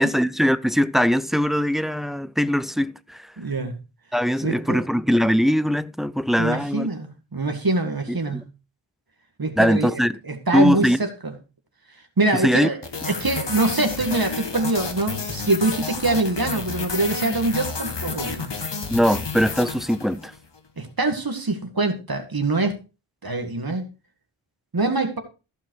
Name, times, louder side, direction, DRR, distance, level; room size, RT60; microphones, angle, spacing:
voice 1, 0.0-3.2 4.1-6.9 8.1-8.4 9.6-10.2 10.5-11.0 12.4-12.7 18.9-20.3, equal, ahead, 0.5 m, -21 dB
voice 2, 3.4-3.7 4.4-4.8 6.4-8.5 9.4-11.3 12.2-12.8 13.1-18.5 20.8-22.8 23.2-23.9 24.7-25.2, right 2 dB, 45° right, 2.0 m, -24 dB
sound 1, 12.8-20.4, left 4 dB, 60° left, 1.9 m, -31 dB
15.0 x 5.6 x 4.7 m
wide cardioid pair, 70°, 48 cm